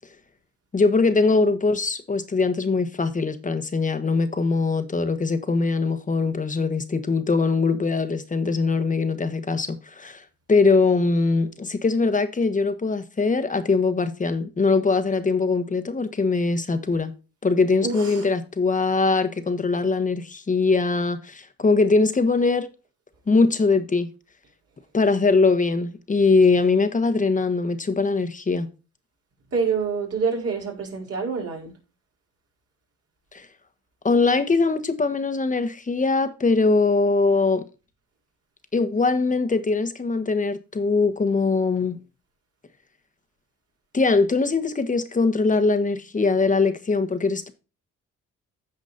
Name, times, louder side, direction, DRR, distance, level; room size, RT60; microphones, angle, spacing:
voice 1, 0.7-10.2 10.5-17.1 17.4-22.7 23.3-24.1 24.9-28.7 33.3-33.5 34.0-37.6 38.7-42.0 43.9-47.5, left 3 dB, 25° left, 1.3 m, -22 dB
voice 2, 17.8-18.3 29.5-31.7, right 5 dB, 50° right, 4.4 m, -26 dB
15.5 x 5.2 x 2.6 m
cardioid pair, 90°, 30 cm